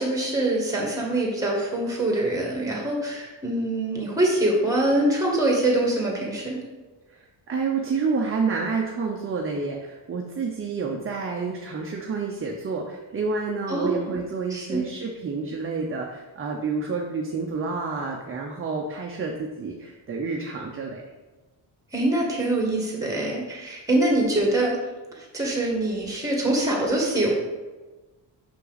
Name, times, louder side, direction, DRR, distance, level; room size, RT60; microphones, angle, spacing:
voice 1, 0.0-6.6 13.7-14.2 14.5-14.8 21.9-24.7 25.3-27.3, right 1 dB, 10° right, -2 dB, 1.6 m, -24 dB
voice 2, 7.5-21.0, right 4 dB, 30° right, 0 dB, 0.6 m, -29 dB
6.1 x 5.7 x 4.0 m, 1.2 s
wide cardioid pair, 160°, 43 cm